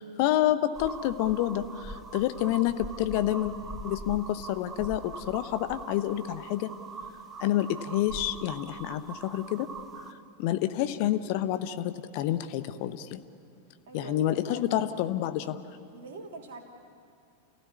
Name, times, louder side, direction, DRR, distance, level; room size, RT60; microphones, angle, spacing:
voice 1, 0.0-3.5 3.8-6.7 7.4-9.7 10.4-13.2 13.9-15.6, left 13 dB, 45° left, 11 dB, 0.9 m, -28 dB
sound 1, 0.7-10.1, right 3 dB, 20° right, 1.3 m, -42 dB
voice 2, 13.9-14.7 15.9-16.6, right 4 dB, 55° right, 2 dB, 3.1 m, -43 dB
28.5 x 16.0 x 9.5 m, 2.4 s
figure-of-eight pair, 90°, 0 cm